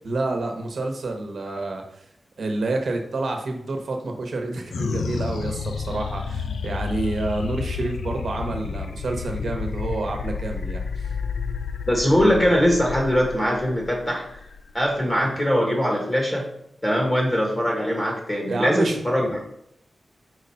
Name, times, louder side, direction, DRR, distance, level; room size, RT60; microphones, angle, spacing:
voice 1, 0.0-1.8 2.4-11.1 18.5-19.4, right 2 dB, 60° right, 3 dB, 1.1 m, -28 dB
sound 1, 4.7-15.4, left 5 dB, 85° left, 0.4 m, -31 dB
voice 2, 11.9-14.3 14.7-16.5 16.8-19.4, equal, 20° left, -1 dB, 1.4 m, -21 dB
4.7 x 4.0 x 5.6 m, 0.76 s
wide cardioid pair, 145°, 0 cm